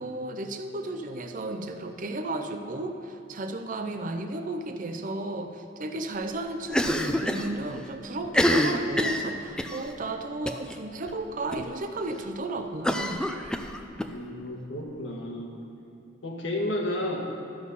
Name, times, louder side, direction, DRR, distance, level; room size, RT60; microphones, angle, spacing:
voice 1, 0.0-13.3, right 2 dB, 45° right, 6 dB, 0.6 m, -34 dB
Cough, 6.7-7.5 7.8-7.9 8.2-9.8 10.5-10.8 11.1-11.2 11.5-11.6 12.8-14.1, equal, 5° left, 0.4 m, -26 dB
voice 2, 14.1-15.6 16.2-17.2, left 1 dB, 85° left, 1 dB, 1.5 m, -32 dB
12.5 x 6.4 x 5.5 m, 2.7 s
head